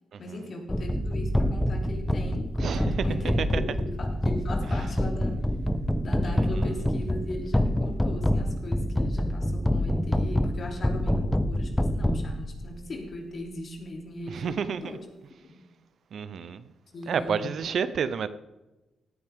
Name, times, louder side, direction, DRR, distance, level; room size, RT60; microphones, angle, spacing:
voice 1, 0.2-5.4 6.0-15.0 15.4-15.5 16.9-17.7, left 1 dB, 55° left, 3.3 m, -38 dB
sound 1, 0.7-12.8, left 1 dB, 10° left, 0.9 m, -27 dB
voice 2, 2.6-3.2 3.5-3.6 4.7-4.8 6.2-6.8 14.3-15.0 16.1-16.6 17.1-18.3, right 7 dB, 65° right, 0.8 m, -30 dB
17.5 x 9.6 x 3.7 m
supercardioid pair, 60°, 0 cm